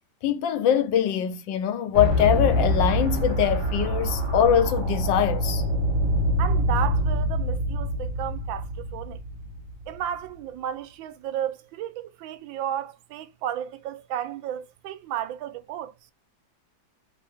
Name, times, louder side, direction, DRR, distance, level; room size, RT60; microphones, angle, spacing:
voice 1, 0.2-5.6, left 9 dB, 80° left, 1.3 m, -23 dB
sound 1, 1.9-10.0, equal, 60° right, 1.8 m, -25 dB
voice 2, 6.4-9.2 9.9-15.9, right 10 dB, 90° right, 1.3 m, -33 dB
3.4 x 2.6 x 3.4 m
omnidirectional pair, 2.0 m